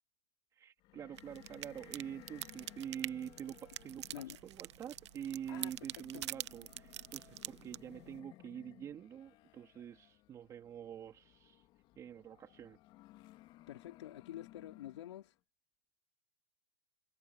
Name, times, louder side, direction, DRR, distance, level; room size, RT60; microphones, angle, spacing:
voice 1, 0.5-11.7 12.0-12.8, right 9 dB, 20° right, 2.4 m, -46 dB
sound 1, 0.8-15.3, left 16 dB, 35° left, 2.7 m, -60 dB
sound 2, 1.1-8.2, right 13 dB, 80° right, 1.0 m, -46 dB
voice 2, 4.1-4.4 5.5-6.2 13.7-15.3, left 12 dB, 80° left, 3.8 m, -48 dB
supercardioid pair, 150°, 15 cm